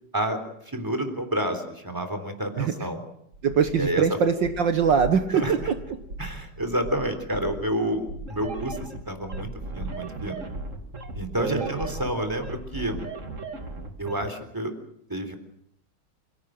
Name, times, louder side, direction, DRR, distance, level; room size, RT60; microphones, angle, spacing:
voice 1, 0.1-3.0 3.8-4.0 5.3-5.5 6.2-10.4 11.1-13.0 14.0-14.7 15.1-15.4, right 1 dB, 10° right, 8 dB, 3.6 m, -29 dB
sound 1, 3.3-12.8, right 2 dB, 85° right, 7.9 m, -40 dB
voice 2, 3.4-5.8 11.4-11.7, right 6 dB, 65° right, 8 dB, 1.9 m, -22 dB
sound 2, 8.3-14.3, right 3 dB, 35° right, 2.8 m, -37 dB
28.5 x 17.5 x 7.8 m, 0.73 s
omnidirectional pair, 2.3 m